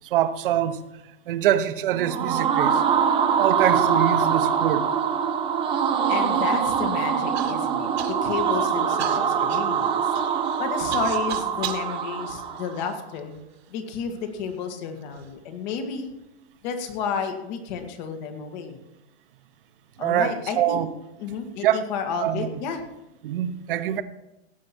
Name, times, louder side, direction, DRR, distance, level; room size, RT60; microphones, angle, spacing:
voice 1, 0.1-0.8 1.3-2.8 3.4-4.9 20.0-20.9 21.6-21.9 22.2-22.5 23.2-24.0, right 11 dB, 55° right, 1.1 m, -24 dB
sound 1, 1.9-12.8, right 7 dB, 15° right, 1.1 m, -23 dB
voice 2, 6.1-10.0 10.3-13.4 13.7-16.1 16.6-18.8 20.0-20.8 21.2-22.8, left 6 dB, 45° left, 2.0 m, -31 dB
Human voice / Cough, 7.3-7.5 8.0-8.5 9.0-11.9 12.6-13.4 14.1-14.2 14.9-15.3, right 10 dB, 75° right, 1.9 m, -36 dB
17.0 x 8.7 x 4.4 m
hypercardioid pair, 150°, 32 cm